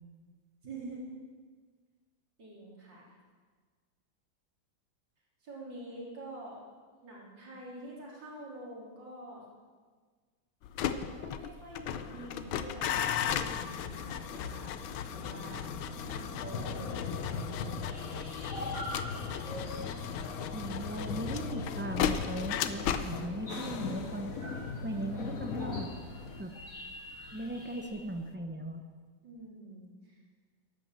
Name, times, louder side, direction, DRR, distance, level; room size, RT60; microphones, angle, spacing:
voice 1, 0.6-1.0 2.4-3.1 5.4-6.6 7.0-9.4 10.8-14.7 15.1-15.6 16.0-17.6 29.2-30.2, right 2 dB, 65° right, -4 dB, 4.1 m, -47 dB
sound 1, 10.6-27.6 27.9-28.3, left 9 dB, 85° left, 1.5 m, -37 dB
sound 2, 12.0-26.4, left 4 dB, 55° left, 1.1 m, -40 dB
sound 3, 17.9-27.9, equal, 35° left, 4.8 m, -46 dB
voice 2, 20.5-24.3 24.8-25.9 26.4-26.5 27.3-28.8, right 1 dB, 10° right, 5 dB, 0.5 m, -38 dB
12.5 x 11.5 x 7.6 m, 1.5 s
omnidirectional pair, 2.1 m